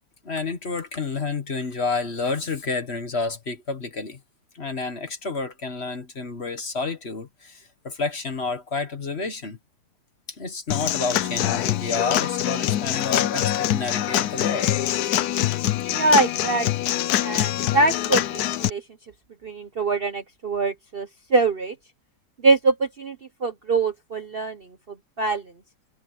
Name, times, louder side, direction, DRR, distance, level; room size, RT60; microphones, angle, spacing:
voice 1, 0.2-4.2 4.5-9.6 10.4-14.7, left 4 dB, 40° left, 1.7 m, -30 dB
Human voice / Acoustic guitar / Drum, 10.7-18.7, left 12 dB, 70° left, 1.1 m, -24 dB
voice 2, 15.9-16.7 17.2-18.8 19.4-21.7 22.4-23.2 23.4-24.7 25.2-25.4, right 3 dB, 40° right, 0.9 m, -23 dB
omnidirectional pair, 1.9 m